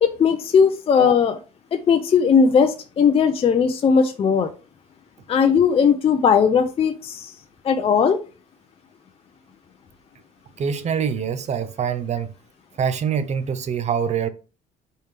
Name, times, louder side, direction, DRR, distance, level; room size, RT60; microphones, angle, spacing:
voice 1, 0.0-1.4 1.7-4.5 5.3-7.3 7.6-8.2, left 6 dB, 30° left, 0.5 m, -18 dB
voice 2, 10.6-12.3 12.8-14.3, right 7 dB, 40° right, 0.6 m, -24 dB
4.3 x 3.4 x 3.3 m
cardioid pair, 100°, 18 cm